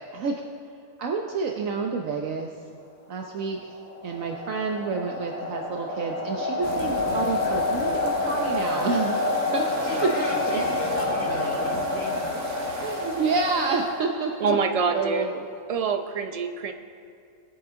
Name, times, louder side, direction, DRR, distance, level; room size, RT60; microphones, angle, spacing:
voice 1, 1.0-2.5 3.1-3.7 4.0-9.6 10.5-10.6 11.1-11.5 12.8-14.6 14.9-15.5, right 4 dB, 70° right, 1 dB, 1.1 m, -29 dB
sound 1, 3.5-14.4, left 2 dB, 60° left, 2.4 m, -28 dB
sound 2, 6.6-14.0, right 3 dB, 85° right, 1.7 m, -39 dB
voice 2, 9.7-12.1, equal, 80° left, -5 dB, 4.0 m, -35 dB
voice 3, 14.4-15.3 15.7-16.7, right 5 dB, 50° right, 6 dB, 0.4 m, -25 dB
20.0 x 7.9 x 3.7 m, 2.3 s
omnidirectional pair, 1.5 m